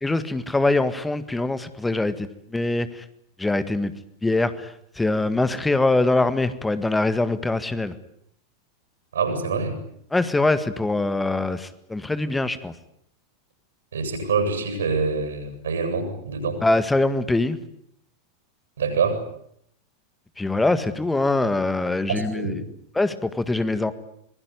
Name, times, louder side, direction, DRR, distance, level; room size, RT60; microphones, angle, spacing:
voice 1, 0.0-3.0 3.4-3.9 4.2-7.9 10.1-12.7 16.6-17.6 20.4-22.5 23.0-23.9, left 2 dB, 10° left, 13 dB, 1.8 m, -23 dB
voice 2, 9.1-9.8 13.9-16.6 18.8-19.2 22.1-22.6, right 4 dB, 65° right, 7 dB, 7.8 m, -25 dB
25.5 x 21.5 x 9.7 m, 0.71 s
figure-of-eight pair, 90°, 0 cm